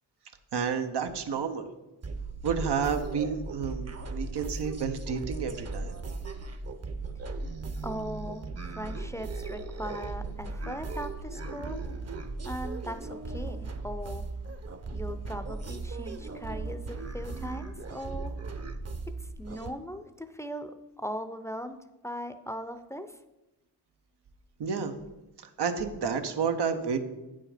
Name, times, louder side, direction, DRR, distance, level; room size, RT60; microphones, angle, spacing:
voice 1, 0.5-1.7 2.4-5.9 24.6-24.9 25.6-27.0, right 6 dB, 90° right, 7 dB, 0.8 m, -30 dB
sound 1, 2.0-19.7, right 3 dB, 40° right, 0.7 m, -37 dB
voice 2, 7.8-11.8 12.4-14.3 14.9-18.3 19.2-21.8 22.0-23.2, equal, 5° left, 9 dB, 0.5 m, -39 dB
8.7 x 5.7 x 4.9 m, 1.0 s
wide cardioid pair, 80°, 39 cm